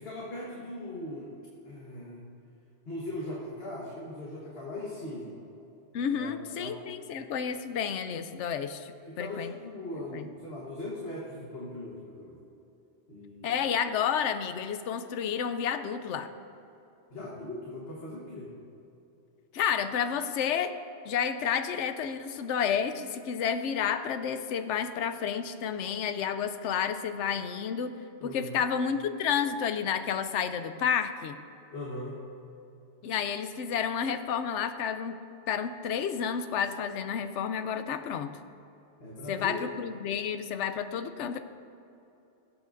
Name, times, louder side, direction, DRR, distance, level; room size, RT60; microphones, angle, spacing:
voice 1, 0.0-1.4 1.6-2.2 2.9-5.3 6.0-6.8 9.1-12.4 13.1-13.6 17.1-18.5 28.2-28.6 31.7-32.2 39.0-39.7, left 1 dB, 60° left, -4 dB, 1.5 m, -39 dB
voice 2, 5.9-9.5 10.1-10.3 13.4-16.3 19.5-20.7 21.0-27.9 28.2-31.4 33.0-35.2 35.5-38.3 39.3-41.4, left 7 dB, 85° left, 10 dB, 0.9 m, -30 dB
18.5 x 8.2 x 2.5 m, 2.9 s
omnidirectional pair, 1.2 m